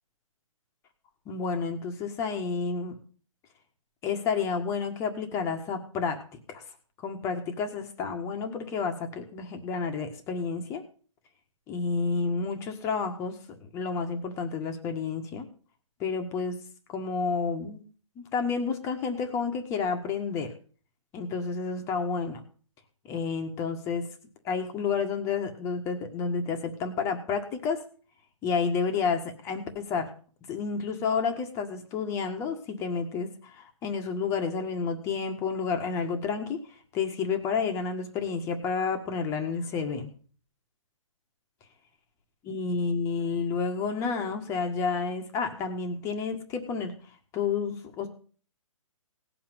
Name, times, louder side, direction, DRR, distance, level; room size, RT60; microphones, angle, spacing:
voice 1, 1.2-3.0 4.0-6.2 6.5-6.6 7.0-10.8 11.7-15.4 16.0-16.6 16.9-17.8 18.1-20.5 21.1-22.4 23.0-24.1 24.4-27.8 28.4-30.1 30.5-40.1 42.4-46.9 47.3-48.1, left 5 dB, 15° left, 5 dB, 1.6 m, -30 dB
18.0 x 6.0 x 9.3 m, 0.42 s
hypercardioid pair, 160°, 18 cm